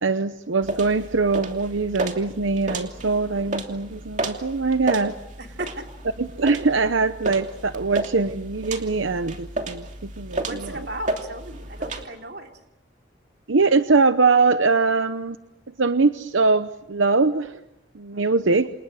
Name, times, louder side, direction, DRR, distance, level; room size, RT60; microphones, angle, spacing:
voice 1, 0.0-5.1 6.4-10.8 13.5-15.4 15.8-17.6 17.9-18.7, right 4 dB, 85° right, 10 dB, 0.9 m, -22 dB
sound 1, 0.6-12.0, right 2 dB, 40° right, 2.8 m, -32 dB
voice 2, 5.4-5.9 10.4-12.5 18.1-18.4, right 1 dB, 60° right, 3 dB, 3.3 m, -36 dB
29.0 x 27.5 x 6.5 m, 0.88 s
head